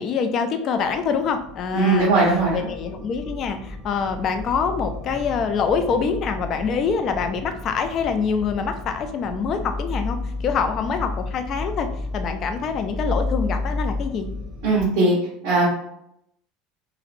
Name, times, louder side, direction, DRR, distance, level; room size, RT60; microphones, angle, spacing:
voice 1, 0.0-2.1 2.5-14.3, left 6 dB, 40° left, 7 dB, 0.4 m, -25 dB
sound 1, 0.8-14.8, left 2 dB, 10° left, 1.1 m, -32 dB
voice 2, 1.7-2.7 14.6-15.1 15.4-15.7, right 3 dB, 60° right, -7 dB, 1.1 m, -19 dB
2.9 x 2.9 x 2.5 m, 0.78 s
supercardioid pair, 135°, 0 cm